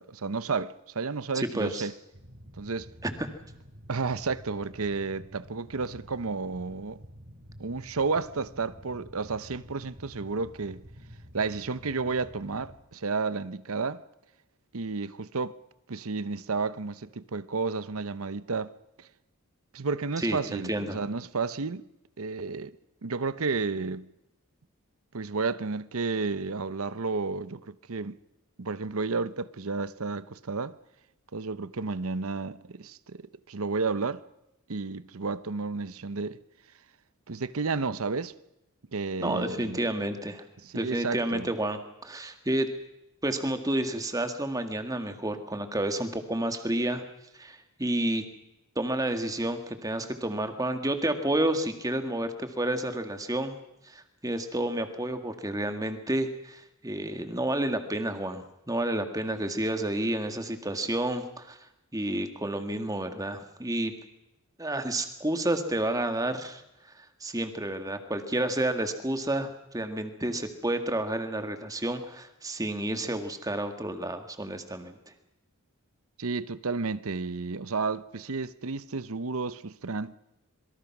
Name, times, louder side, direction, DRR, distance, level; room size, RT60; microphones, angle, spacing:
voice 1, 0.0-1.9 2.6-2.9 3.9-7.0 7.6-10.8 11.3-14.0 14.7-15.6 15.9-19.1 19.7-21.9 22.2-22.7 23.0-24.1 25.1-28.2 28.6-30.8 31.3-33.2 33.5-34.2 34.7-36.4 37.3-38.3 38.9-39.9 40.6-41.5 76.2-80.1, right 4 dB, 70° right, 0.8 m, -32 dB
voice 2, 1.3-1.9 3.0-3.3 20.2-21.0 39.2-40.4 40.7-42.7 43.2-47.0 47.3-48.2 48.8-53.6 53.8-61.6 61.9-63.9 64.6-75.0, right 1 dB, 15° right, 2.0 m, -30 dB
sound 1, 2.1-12.8, equal, 50° right, 4.5 m, -49 dB
26.5 x 23.0 x 6.1 m
head